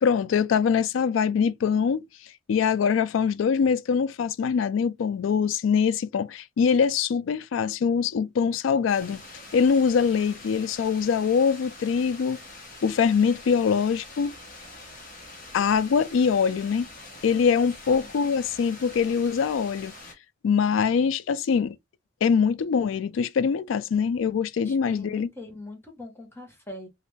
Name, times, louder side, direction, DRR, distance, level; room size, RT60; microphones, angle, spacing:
voice 1, 0.0-2.1 2.5-9.2 9.5-12.4 12.8-14.4 15.5-16.9 17.2-19.9 20.4-21.8 22.2-25.3, left 6 dB, 80° left, 0.3 m, -23 dB
sound 1, 8.9-20.1, left 2 dB, 45° left, 1.0 m, -45 dB
voice 2, 24.6-26.9, left 2 dB, 10° left, 1.0 m, -41 dB
3.1 x 2.5 x 3.1 m
head